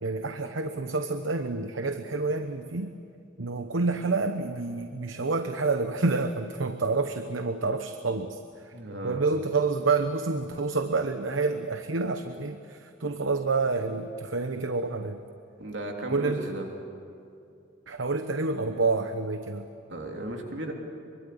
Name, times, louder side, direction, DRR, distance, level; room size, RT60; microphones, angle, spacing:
voice 1, 0.0-3.0 3.4-8.7 9.0-15.2 16.1-16.5 17.9-19.7, right 3 dB, 85° right, 8 dB, 1.0 m, -28 dB
voice 2, 8.7-9.2 15.6-16.6 19.9-20.7, right 1 dB, 70° right, 1 dB, 3.4 m, -35 dB
24.5 x 24.0 x 8.6 m, 2.6 s
head